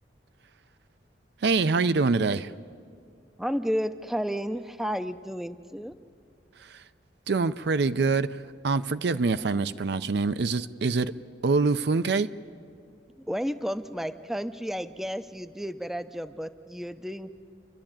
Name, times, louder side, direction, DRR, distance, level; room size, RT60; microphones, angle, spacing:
voice 1, 1.4-2.5 6.6-6.8 7.3-8.4 8.6-11.1 11.4-12.3, right 4 dB, 60° right, 13 dB, 0.5 m, -25 dB
voice 2, 3.4-5.9 13.2-17.3, equal, ahead, 11 dB, 0.5 m, -32 dB
28.5 x 11.5 x 8.8 m, 2.3 s
head